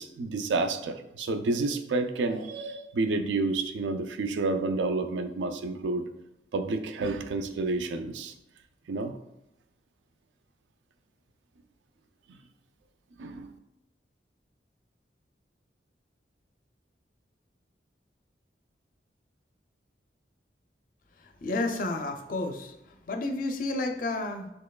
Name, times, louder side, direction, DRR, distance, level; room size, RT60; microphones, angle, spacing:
voice 1, 0.0-6.0 6.5-8.3 8.9-9.1 13.2-13.5, right 3 dB, 90° right, 8 dB, 0.4 m, -29 dB
voice 2, 21.1-24.5, left 2 dB, 50° left, 4 dB, 0.4 m, -31 dB
4.3 x 3.0 x 2.3 m, 0.87 s
head